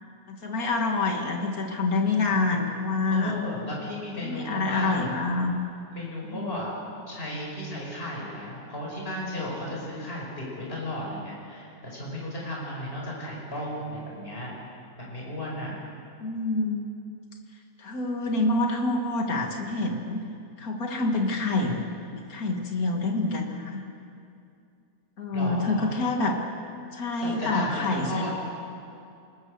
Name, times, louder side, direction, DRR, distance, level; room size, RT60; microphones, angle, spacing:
voice 1, 0.3-3.3 4.2-5.6 6.3-6.6 16.2-16.8 17.8-20.2 20.6-21.9 22.1-23.8 25.2-26.4 26.9-28.4, left 3 dB, 75° left, 1 dB, 2.6 m, -27 dB
voice 2, 2.3-2.6 3.1-5.0 5.9-6.8 7.1-14.5 15.0-15.8 25.3-25.9 27.1-28.4, left 1 dB, 40° left, -4 dB, 5.8 m, -34 dB
27.0 x 22.0 x 6.6 m, 2.5 s
omnidirectional pair, 1.6 m